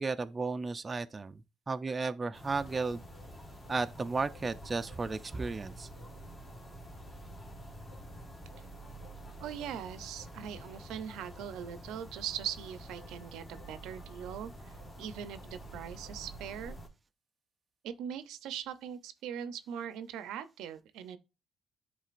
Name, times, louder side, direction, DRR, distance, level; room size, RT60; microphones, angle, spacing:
voice 1, 0.0-3.0 3.7-5.9, right 3 dB, 25° right, 0.4 m, -34 dB
sound 1, 2.3-16.9, right 1 dB, 30° left, 1.5 m, -48 dB
voice 2, 9.4-16.8 17.8-21.2, right 9 dB, 85° right, 0.6 m, -41 dB
10.5 x 3.8 x 2.5 m
cardioid pair, 120°, 0 cm